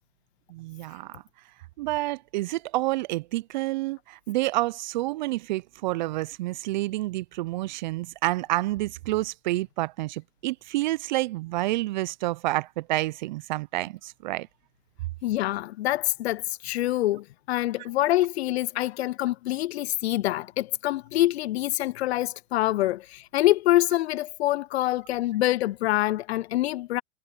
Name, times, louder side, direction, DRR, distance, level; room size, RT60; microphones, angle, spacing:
voice 1, 0.5-1.2 1.8-14.5, right 18 dB, 35° right, 0.5 m, -29 dB
voice 2, 15.2-27.0, left 15 dB, 55° left, 0.5 m, -25 dB
hypercardioid pair, 125°, 40 cm